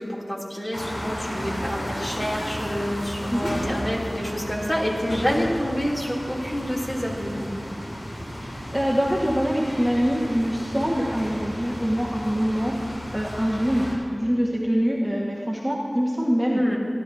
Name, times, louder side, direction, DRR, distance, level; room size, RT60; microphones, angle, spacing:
voice 1, 0.0-7.5 16.5-16.8, equal, 30° left, -4 dB, 3.0 m, -27 dB
sound 1, 0.7-13.9, equal, 85° left, 3.4 m, -34 dB
voice 2, 8.3-16.6, equal, ahead, -4 dB, 1.5 m, -24 dB
18.5 x 11.5 x 2.8 m, 2.2 s
wide cardioid pair, 40°, 0 cm